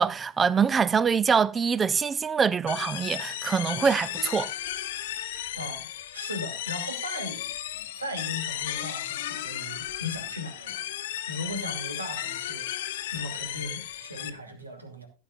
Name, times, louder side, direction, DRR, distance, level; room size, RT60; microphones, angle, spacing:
voice 1, 0.0-4.5, right 6 dB, 20° right, 0.4 m, -24 dB
sound 1, 2.7-14.3, left 12 dB, 55° left, 0.9 m, -34 dB
voice 2, 6.1-7.5 8.0-12.7 13.1-15.1, left 1 dB, 80° right, 2.6 m, -37 dB
16.5 x 9.1 x 2.5 m
figure-of-eight pair, 90°, 0 cm